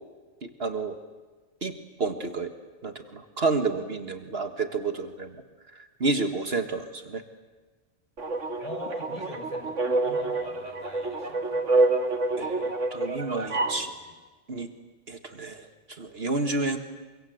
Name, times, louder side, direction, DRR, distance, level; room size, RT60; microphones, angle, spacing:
voice 1, 0.4-1.0 1.6-2.5 2.8-5.4 5.7-7.2 12.4-13.9 14.5-14.7 15.1-16.8, right 3 dB, 55° right, 8 dB, 1.8 m, -30 dB
sound 1, 8.2-13.8, right 2 dB, 80° right, 2.2 m, -27 dB
voice 2, 8.6-11.6 13.4-14.1, left 1 dB, 35° left, 2 dB, 5.4 m, -42 dB
29.5 x 24.5 x 7.9 m, 1.3 s
omnidirectional pair, 1.2 m